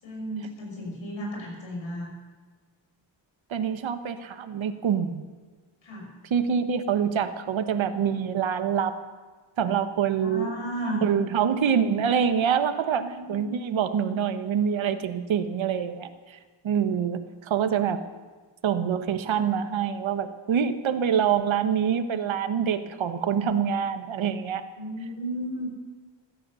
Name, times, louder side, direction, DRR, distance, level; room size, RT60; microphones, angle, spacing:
voice 1, 0.0-2.1 5.8-6.1 10.2-11.0 12.9-13.6 24.8-25.7, equal, 80° left, -1 dB, 6.3 m, -34 dB
voice 2, 3.5-5.2 6.3-9.0 9.6-10.5 11.0-16.4 16.6-18.0 18.6-24.6, right 7 dB, 80° right, 9 dB, 1.2 m, -25 dB
16.5 x 12.5 x 7.0 m, 1.5 s
wide cardioid pair, 150°, 46 cm